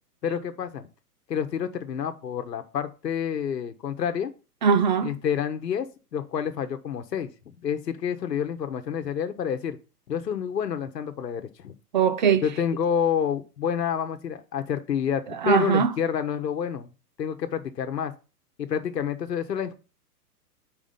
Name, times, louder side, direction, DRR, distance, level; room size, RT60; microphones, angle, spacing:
voice 1, 0.2-0.9 1.3-4.3 5.0-7.3 7.6-9.8 10.1-11.7 12.4-16.9 17.2-18.1 18.6-19.7, left 8 dB, 85° left, 1.1 m, -28 dB
voice 2, 4.6-5.1 11.9-12.4 15.4-15.9, right 7 dB, 35° right, 0.4 m, -20 dB
5.0 x 5.0 x 5.5 m
hypercardioid pair, 130°, 48 cm